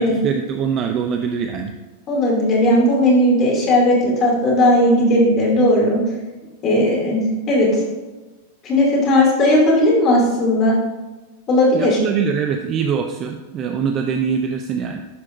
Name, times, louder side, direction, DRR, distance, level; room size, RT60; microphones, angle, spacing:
voice 1, 0.0-1.7 11.7-15.0, right 6 dB, 30° right, 5 dB, 0.4 m, -23 dB
voice 2, 2.1-6.0 6.6-7.7 8.6-10.8 11.5-12.0, left 1 dB, 30° left, -3 dB, 2.4 m, -16 dB
11.0 x 4.9 x 2.5 m, 1.2 s
supercardioid pair, 155°, 0 cm